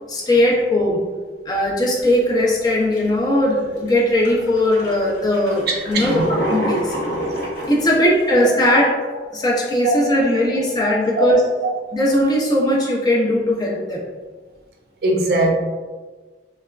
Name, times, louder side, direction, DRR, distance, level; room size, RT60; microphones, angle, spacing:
voice 1, 0.1-1.0 1.5-6.9 7.7-11.4 11.9-14.0, left 1 dB, 20° left, -2 dB, 0.4 m, -19 dB
sound 1, 2.0-2.2 2.7-3.2 3.8-3.9 4.2-8.3, equal, 80° left, 1.0 m, -27 dB
voice 2, 5.7-6.2 11.2-11.3 15.0-15.5, right 1 dB, 60° right, 0 dB, 0.5 m, -20 dB
3.2 x 2.2 x 2.2 m, 1.3 s
head